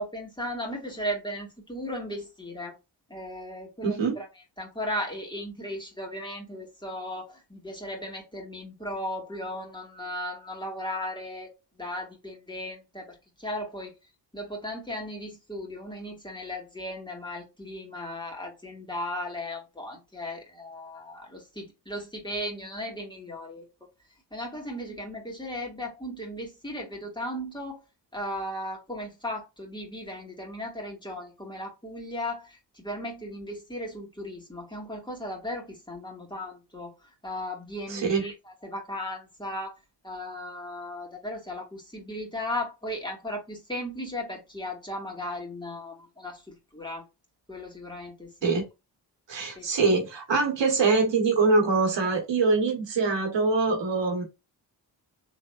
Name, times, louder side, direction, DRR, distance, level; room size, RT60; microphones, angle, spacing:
voice 1, 0.0-2.8 3.1-4.3 4.6-11.5 11.8-13.9 14.3-23.7 24.3-27.8 28.1-36.9 37.2-39.7 40.0-47.0 47.5-48.5 49.6-49.7, left 1 dB, 10° left, 2.1 m, -36 dB
voice 2, 3.8-4.1 37.9-38.2 48.4-48.7 49.3-54.2, right 4 dB, 65° right, 1.5 m, -24 dB
4.1 x 3.3 x 2.5 m
supercardioid pair, 50°, 48 cm